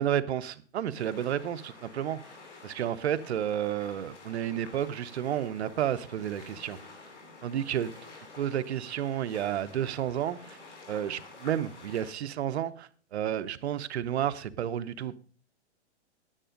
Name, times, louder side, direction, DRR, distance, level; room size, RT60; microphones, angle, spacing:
voice 1, 0.0-2.2 2.6-6.8 7.4-7.9 8.4-10.6 10.9-15.2, right 10 dB, 65° right, 0.9 m, -31 dB
sound 1, 1.0-12.1, left 3 dB, 80° left, 3.8 m, -50 dB
10.0 x 8.4 x 5.1 m
hypercardioid pair, 160°, 35 cm